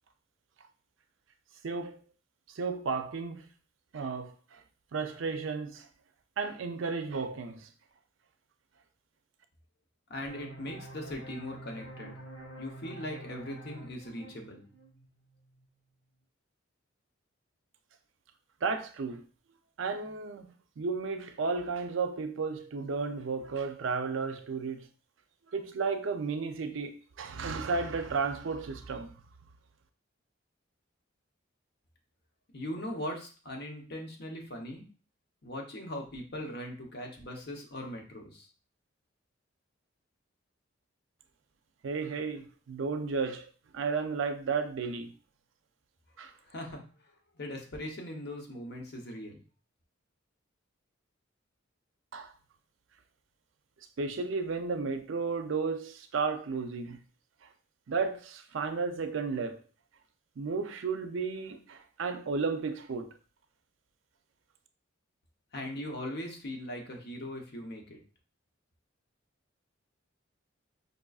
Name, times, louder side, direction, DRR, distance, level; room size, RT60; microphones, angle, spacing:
voice 1, 1.6-2.0 2.5-3.5 3.9-4.6 4.9-5.9 6.4-7.7 18.6-19.2 19.8-20.5 20.8-24.9 25.5-29.1 41.8-43.5 43.7-45.1 46.2-46.3 52.1-52.3 54.0-57.0 57.9-59.6 60.4-63.1, right 4 dB, 70° right, 0.5 m, -33 dB
voice 2, 10.1-12.2 12.6-14.6 32.5-34.9 35.4-38.5 46.5-46.8 47.4-49.4 65.5-68.0, left 1 dB, 55° left, 0.9 m, -40 dB
sound 1, 10.3-15.7, right 2 dB, 85° left, 1.0 m, -47 dB
5.2 x 2.5 x 2.3 m
head